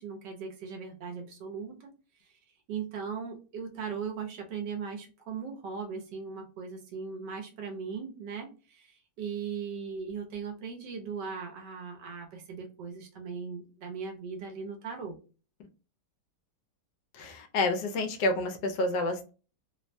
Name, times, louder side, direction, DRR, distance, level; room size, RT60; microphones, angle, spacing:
voice 1, 0.0-1.9 2.3-2.4 2.7-15.2, right 6 dB, 80° right, 3 dB, 1.4 m, -38 dB
voice 2, 17.1-19.3, left 2 dB, 75° left, 6 dB, 1.2 m, -29 dB
3.3 x 2.1 x 2.6 m, 0.35 s
omnidirectional pair, 1.9 m